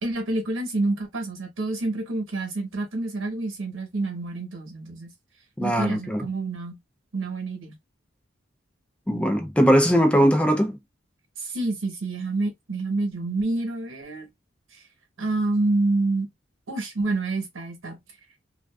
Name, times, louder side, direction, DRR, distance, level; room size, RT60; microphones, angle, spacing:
voice 1, 0.0-5.1 5.6-6.8 7.1-7.7 11.4-14.3 14.7-14.8 15.2-16.3 16.7-18.0, right 2 dB, 85° right, 1.0 m, -28 dB
voice 2, 5.6-6.2 9.1-10.8, equal, 5° left, 0.4 m, -20 dB
2.5 x 2.3 x 2.3 m
head